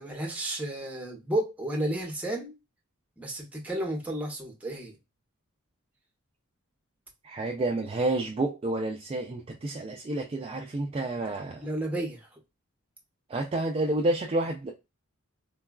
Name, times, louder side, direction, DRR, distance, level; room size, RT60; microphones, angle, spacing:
voice 1, 0.0-2.6 3.2-5.0 11.6-12.3, right 1 dB, 5° right, 0.8 m, -32 dB
voice 2, 7.2-11.7 13.3-14.7, right 2 dB, 25° right, 0.4 m, -29 dB
3.8 x 2.3 x 2.2 m
head